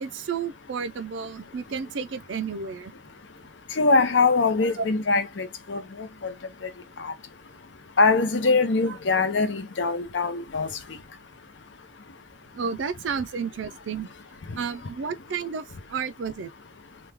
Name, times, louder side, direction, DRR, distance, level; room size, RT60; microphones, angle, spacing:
voice 1, 0.0-2.9 4.6-4.9 12.6-14.1 14.6-16.5, right 6 dB, 75° right, 0.4 m, -32 dB
voice 2, 3.8-5.8 6.2-6.3 7.0-7.1 8.0-10.7, left 3 dB, 70° left, 0.7 m, -22 dB
3.1 x 2.2 x 3.4 m
head